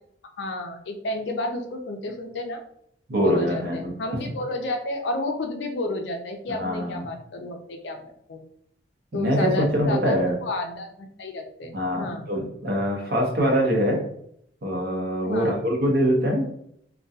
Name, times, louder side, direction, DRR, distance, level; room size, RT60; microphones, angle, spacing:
voice 1, 0.4-2.6 3.1-8.4 9.1-12.2 15.2-15.6, left 2 dB, 70° left, 4 dB, 0.4 m, -31 dB
voice 2, 3.1-3.9 6.5-7.0 9.1-10.4 11.7-14.0 14.6-16.4, equal, 55° right, 0 dB, 0.7 m, -23 dB
2.6 x 2.2 x 2.3 m, 0.69 s
head